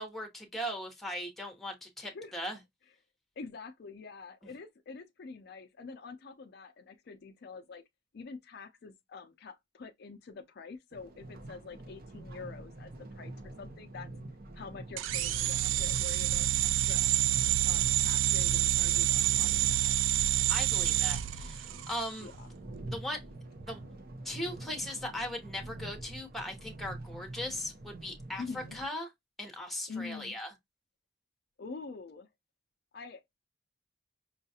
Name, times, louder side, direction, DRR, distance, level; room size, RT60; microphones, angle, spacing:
voice 1, 0.0-2.6 20.5-22.3 22.9-23.2 23.6-23.8 24.2-29.1 29.4-30.5, left 1 dB, ahead, 0.9 m, -38 dB
voice 2, 2.0-2.4 3.4-7.8 8.1-13.3 13.6-14.1 14.5-17.1 17.6-20.0 22.2-22.5 28.4-28.8 29.9-30.4 31.6-32.3 32.9-33.2, left 4 dB, 55° left, 0.4 m, -46 dB
sound 1, 10.9-28.9, right 2 dB, 50° right, 0.7 m, -46 dB
sound 2, 15.0-22.1, right 12 dB, 75° right, 0.3 m, -28 dB
5.5 x 2.3 x 2.7 m
head